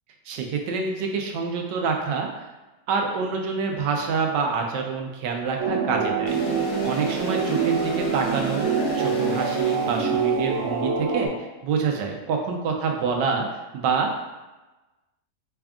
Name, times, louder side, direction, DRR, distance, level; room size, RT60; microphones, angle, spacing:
voice 1, 0.3-2.3 2.9-6.4 6.8-8.7 8.9-13.5 13.7-14.1, right 5 dB, 85° right, 2 dB, 1.2 m, -26 dB
sound 1, 5.6-11.3, right 5 dB, 65° right, 0.6 m, -25 dB
sound 2, 6.3-10.8, left 2 dB, 70° left, 1.3 m, -38 dB
3.5 x 2.3 x 3.5 m, 1.1 s
omnidirectional pair, 1.8 m